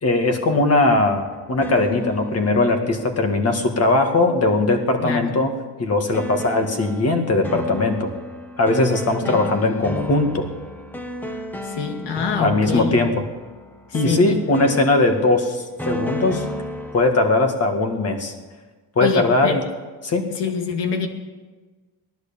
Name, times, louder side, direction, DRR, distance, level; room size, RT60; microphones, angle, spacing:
voice 1, 0.0-5.5 5.8-8.1 8.6-10.5 12.4-13.1 13.9-16.5 16.9-18.3 19.0-19.6 20.0-20.3, left 2 dB, 35° left, 5 dB, 2.0 m, -19 dB
sound 1, 0.9-3.8 6.1-17.2, equal, 5° left, 1.0 m, -33 dB
voice 2, 11.6-13.0 14.0-14.4 19.0-19.6 20.3-21.1, left 5 dB, 80° left, 4 dB, 2.2 m, -25 dB
18.0 x 11.5 x 7.0 m, 1.3 s
cardioid pair, 165°, 41 cm